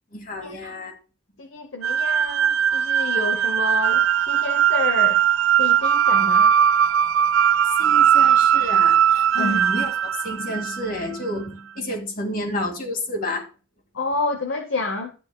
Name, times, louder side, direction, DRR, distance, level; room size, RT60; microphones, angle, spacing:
voice 1, 0.1-0.9 7.8-13.5, left 1 dB, 45° left, 2.2 m, -30 dB
voice 2, 1.4-5.2 5.6-6.5 9.3-9.6 13.9-15.1, left 3 dB, 65° left, 0.9 m, -29 dB
sound 1, 1.8-11.0, right 9 dB, 85° right, 0.3 m, -19 dB
13.0 x 8.7 x 2.3 m
head